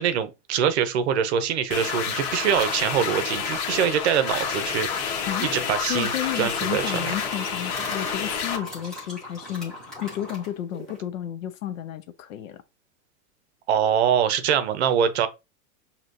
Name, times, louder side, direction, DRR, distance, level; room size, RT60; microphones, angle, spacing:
voice 1, 0.0-7.0 13.7-15.3, right 8 dB, 50° right, 0.7 m, -24 dB
sound 1, 1.7-8.6, left 6 dB, 45° left, 1.3 m, -29 dB
sound 2, 2.5-2.9 4.1-4.9 5.6-11.0, left 1 dB, ahead, 0.4 m, -40 dB
voice 2, 5.3-5.6 5.9-12.6, left 12 dB, 60° left, 0.7 m, -32 dB
6.1 x 2.9 x 2.6 m
supercardioid pair, 175°, 44 cm